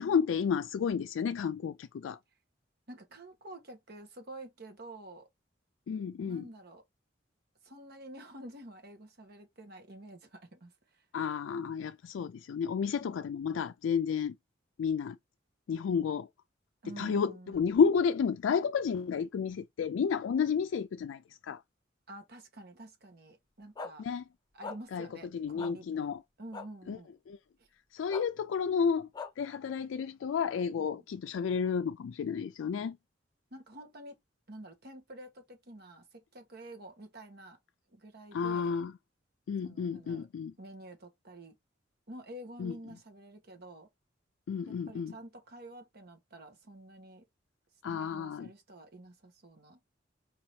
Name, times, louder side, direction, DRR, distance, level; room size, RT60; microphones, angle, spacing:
voice 1, 0.0-2.2 5.9-6.4 11.1-14.4 14.8-15.2 15.7-16.3 17.0-21.6 24.0-24.2 24.9-25.1 25.3-26.2 26.9-27.0 27.3-27.4 27.9-29.1 29.4-33.0 38.3-38.9 39.5-40.5 42.6-42.7 44.5-45.1 47.8-48.5, left 6 dB, 85° left, 0.3 m, -31 dB
voice 2, 2.9-5.3 6.2-6.8 7.6-11.0 13.0-13.1 16.8-17.7 22.1-24.1 24.5-27.1 27.6-27.7 30.7-31.0 33.5-34.2 34.5-37.6 37.9-38.8 39.6-40.3 40.6-41.5 42.1-43.9 44.7-47.2 47.9-49.8, right 1 dB, 55° right, 1.3 m, -49 dB
sound 1, 23.8-23.9 24.6-24.8 25.6-25.7 26.5-26.7 28.1-28.2 29.1-29.3, left 4 dB, 20° left, 0.7 m, -40 dB
4.8 x 2.8 x 3.1 m
head